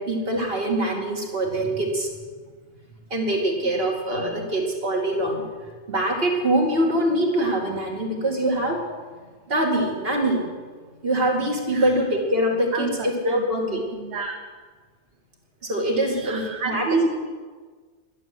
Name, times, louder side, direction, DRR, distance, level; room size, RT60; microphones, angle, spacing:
voice 1, 0.0-2.1 3.1-5.5 5.9-8.8 9.5-10.5 11.0-13.8 15.6-17.1, right 1 dB, 55° right, 0 dB, 2.6 m, -24 dB
voice 2, 12.7-14.4 16.1-17.1, right 5 dB, 70° right, 2 dB, 1.4 m, -31 dB
11.0 x 10.0 x 7.7 m, 1.4 s
omnidirectional pair, 1.2 m